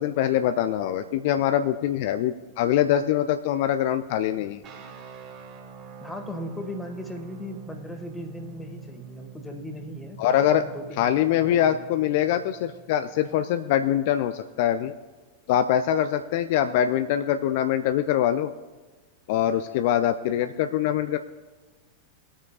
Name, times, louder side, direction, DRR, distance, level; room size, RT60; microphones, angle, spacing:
voice 1, 0.0-4.6 10.2-10.6 11.0-14.9 15.5-18.5 19.3-21.2, left 10 dB, 50° left, 10 dB, 0.4 m, -23 dB
sound 1, 4.6-13.5, right 7 dB, 35° right, 1.6 m, -46 dB
voice 2, 6.0-11.9, left 1 dB, 10° left, 4 dB, 1.7 m, -38 dB
21.5 x 8.7 x 2.4 m, 1.3 s
figure-of-eight pair, 90°, 0 cm